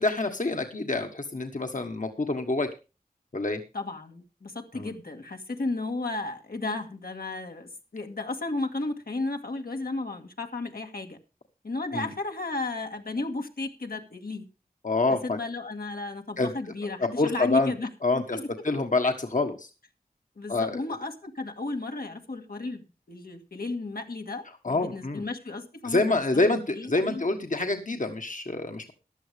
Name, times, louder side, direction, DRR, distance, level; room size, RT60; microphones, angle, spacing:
voice 1, 0.0-2.7 3.3-3.6 4.7-4.9 11.9-12.1 14.8-15.4 16.4-16.5 17.2-17.7 18.0-18.4 18.6-19.7 20.5-20.8 24.6-25.3 25.8-28.9, left 2 dB, 60° left, 5 dB, 1.5 m, -26 dB
voice 2, 3.7-11.2 11.6-14.5 15.2-18.5 20.4-27.2, left 2 dB, 80° left, 3 dB, 1.8 m, -34 dB
15.0 x 11.0 x 3.4 m, 0.30 s
wide cardioid pair, 45°, 15 cm